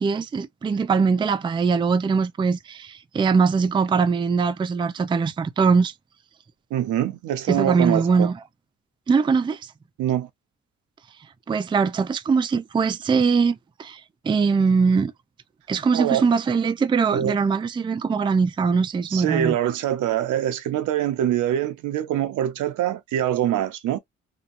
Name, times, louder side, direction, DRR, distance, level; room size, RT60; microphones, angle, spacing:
voice 1, 0.0-5.9 7.5-8.4 9.1-9.6 11.5-15.1 15.7-19.6, right 5 dB, 15° right, 0.3 m, -21 dB
voice 2, 6.7-8.3 10.0-10.3 15.9-16.2 17.1-17.4 19.1-24.0, right 11 dB, 80° right, 0.6 m, -24 dB
2.8 x 2.2 x 2.5 m
cardioid pair, 90°, 30 cm